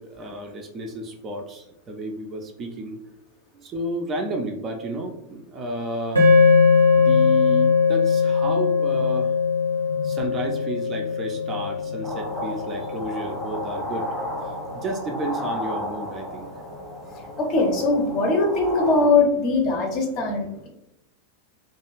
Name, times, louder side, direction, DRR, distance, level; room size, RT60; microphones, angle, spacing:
voice 1, 0.0-3.0 3.5-6.3 6.9-9.3 10.0-14.1 14.7-16.5, right 1 dB, 30° right, 3 dB, 0.4 m, -32 dB
sound 1, 6.1-14.5, left 5 dB, 85° right, 0.7 m, -21 dB
voice 2, 9.7-10.4 11.5-12.1 17.0-20.7, left 3 dB, 35° left, 2 dB, 0.6 m, -23 dB
sound 2, 12.0-19.1, equal, ahead, 0.8 m, -33 dB
2.4 x 2.3 x 2.9 m, 0.85 s
figure-of-eight pair, 90°, 0 cm